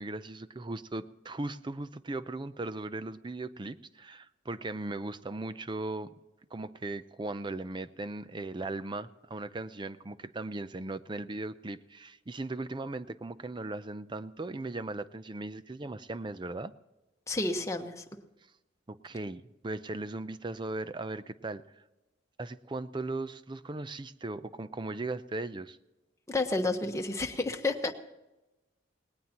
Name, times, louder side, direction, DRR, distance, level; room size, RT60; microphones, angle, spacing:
voice 1, 0.0-6.1 6.5-16.7 18.9-21.6 22.4-25.8, right 2 dB, 25° right, 13 dB, 0.5 m, -38 dB
voice 2, 17.3-18.0 26.3-27.9, left 2 dB, 15° left, 4 dB, 1.1 m, -30 dB
19.0 x 18.5 x 3.0 m, 1.0 s
head